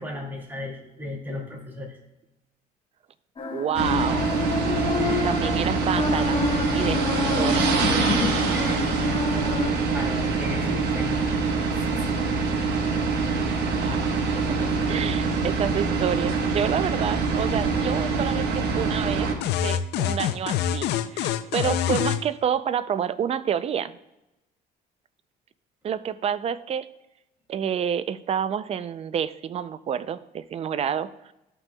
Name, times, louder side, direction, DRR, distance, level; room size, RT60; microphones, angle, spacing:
voice 1, 0.0-2.0 5.0-5.3 7.6-8.9 9.9-11.2 11.9-12.1, left 2 dB, 10° right, 0 dB, 2.3 m, -33 dB
sound 1, 3.4-9.7, left 4 dB, 30° left, 1.3 m, -29 dB
voice 2, 3.5-4.4 5.2-6.4 6.7-7.6 13.8-14.0 14.4-19.3 19.6-23.9 25.8-26.9 27.5-31.3, right 8 dB, 35° right, 14 dB, 0.4 m, -28 dB
sound 2, 3.7-19.3, right 4 dB, 80° right, 1.2 m, -25 dB
sound 3, 19.4-22.2, left 10 dB, 80° left, 0.5 m, -25 dB
13.5 x 5.9 x 2.3 m, 0.94 s
cardioid pair, 110°, 17 cm